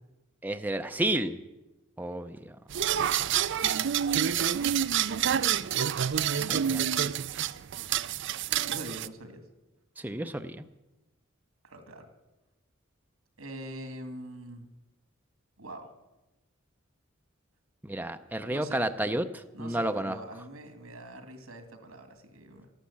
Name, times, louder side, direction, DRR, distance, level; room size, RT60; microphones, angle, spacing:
voice 1, 0.4-1.4 2.0-2.4 6.3-6.8 10.0-10.6 17.8-19.3 19.6-20.2, right 1 dB, 10° right, 7 dB, 0.5 m, -31 dB
sound 1, 2.7-9.1, right 9 dB, 60° right, 0.5 m, -28 dB
voice 2, 8.6-9.4 11.6-12.1 13.4-14.7 15.6-15.9 18.4-18.9 19.5-22.7, right 1 dB, 90° right, 7 dB, 2.4 m, -43 dB
13.5 x 11.5 x 8.5 m, 1.0 s
head